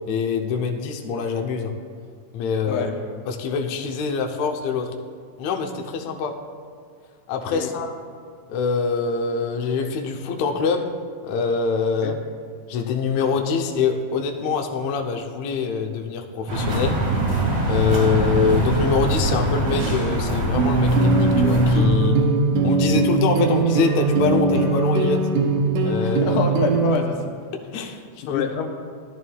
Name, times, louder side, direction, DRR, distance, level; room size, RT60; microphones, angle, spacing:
voice 1, 0.1-1.8 2.3-2.9 3.3-4.9 5.4-6.4 7.3-7.9 8.5-10.9 11.2-12.2 12.7-17.0 17.7-22.2 22.6-25.3 25.9-26.4 27.5-28.6, left 5 dB, 70° left, 2 dB, 1.9 m, -24 dB
sound 1, 16.5-21.8, right 2 dB, 55° right, 3.0 m, -23 dB
sound 2, 20.6-27.0, right 3 dB, 85° right, 2.3 m, -20 dB
voice 2, 26.0-27.2 28.2-28.7, left 5 dB, 90° left, 3 dB, 2.4 m, -27 dB
16.0 x 10.5 x 2.3 m, 2.1 s
omnidirectional pair, 3.6 m